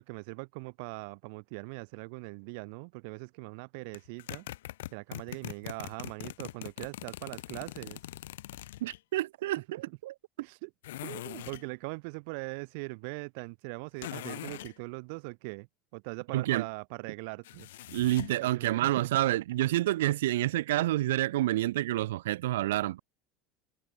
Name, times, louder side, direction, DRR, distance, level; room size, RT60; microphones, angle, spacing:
voice 1, 0.0-4.5 4.9-8.0 10.4-10.7 11.0-15.7 15.9-17.7 18.4-18.9, right 33 dB, 75° right, 2.8 m, -41 dB
sound 1, 3.9-9.0 10.8-11.7 14.0-14.7 17.4-18.4, left 15 dB, 90° left, 6.5 m, -42 dB
voice 2, 8.8-10.1 16.3-16.7 17.9-23.0, right 15 dB, 90° right, 1.7 m, -28 dB
supercardioid pair, 105°, 0 cm